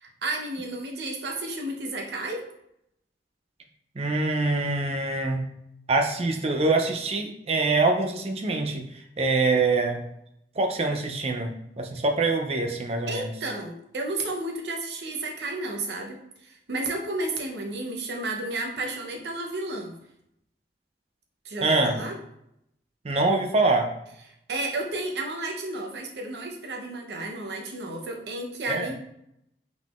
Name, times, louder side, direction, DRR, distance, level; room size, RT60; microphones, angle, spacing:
voice 1, 0.0-2.5 13.1-20.0 21.4-22.1 24.5-28.9, right 2 dB, 70° right, 1 dB, 0.7 m, -32 dB
voice 2, 4.0-5.4 5.9-8.8 9.2-10.0 10.6-13.3 21.6-22.0 23.0-23.9 28.7-28.9, right 3 dB, 35° right, 4 dB, 0.5 m, -24 dB
3.8 x 3.7 x 2.4 m, 0.78 s
head